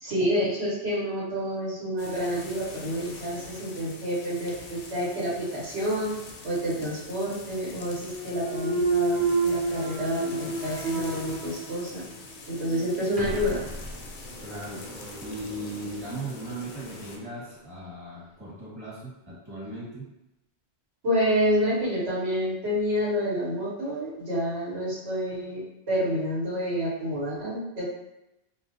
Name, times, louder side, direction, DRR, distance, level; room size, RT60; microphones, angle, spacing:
voice 1, 0.0-6.1 6.4-12.0 12.5-13.6 21.0-25.6 25.9-27.9, equal, 80° right, -6 dB, 1.2 m, -28 dB
sound 1, 2.0-17.2, left 3 dB, 60° left, 0.6 m, -44 dB
Thump thud, 8.0-12.0 12.5-17.2, right 4 dB, 55° right, 0.9 m, -31 dB
voice 2, 14.4-20.1, right 1 dB, 20° right, -7 dB, 1.2 m, -38 dB
3.7 x 2.2 x 2.7 m, 0.92 s
omnidirectional pair, 1.1 m